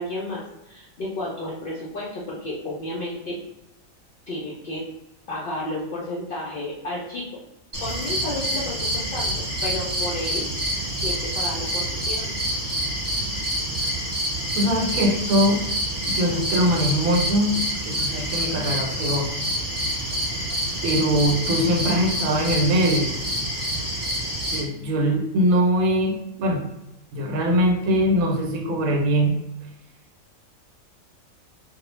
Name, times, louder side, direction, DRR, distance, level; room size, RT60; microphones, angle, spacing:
voice 1, 0.0-3.4 4.3-4.8 5.3-7.3 7.8-10.5 11.0-12.3, left 1 dB, 70° left, -5 dB, 0.5 m, -32 dB
sound 1, 7.7-24.6, right 1 dB, 20° right, 0.9 m, -27 dB
voice 2, 14.5-15.6 16.1-19.3 20.0-20.1 20.8-23.1 24.5-26.6 27.1-29.4, equal, 90° right, 2 dB, 1.0 m, -22 dB
2.3 x 2.0 x 2.9 m, 0.95 s
omnidirectional pair, 1.4 m